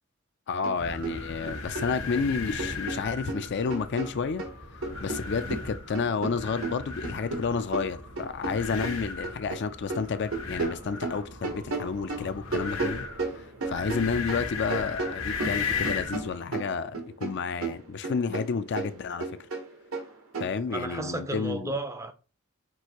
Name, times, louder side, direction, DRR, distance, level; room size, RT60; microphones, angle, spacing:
voice 1, 0.5-4.4 5.0-13.1 13.4-19.3 20.4-21.7, left 5 dB, 55° left, 0.4 m, -30 dB
sound 1, 0.6-0.8 1.0-2.3 2.6-4.5 4.8-9.6 9.9-14.4 14.7-17.4 17.6-20.5, right 3 dB, 90° right, 1.3 m, -34 dB
sound 2, 0.8-16.3, left 4 dB, 80° left, 1.1 m, -37 dB
voice 2, 20.4-22.1, right 2 dB, 15° right, 0.4 m, -34 dB
6.1 x 2.7 x 2.9 m
head